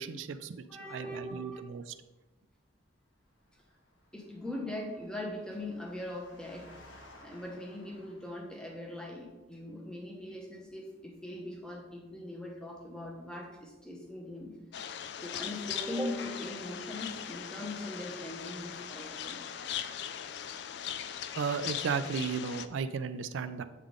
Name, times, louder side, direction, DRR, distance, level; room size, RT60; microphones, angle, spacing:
voice 1, 0.0-0.6 0.9-1.9 21.4-23.6, right 5 dB, 85° right, 11 dB, 0.4 m, -34 dB
voice 2, 0.7-1.6 4.1-6.7 7.2-14.5 15.2-19.4, left 1 dB, 5° left, 0 dB, 0.9 m, -40 dB
Engine, 3.3-8.9, left 1 dB, 90° left, 1.0 m, -57 dB
sound 1, 14.7-22.7, left 9 dB, 60° left, 0.3 m, -40 dB
8.1 x 3.7 x 3.6 m, 1.1 s
head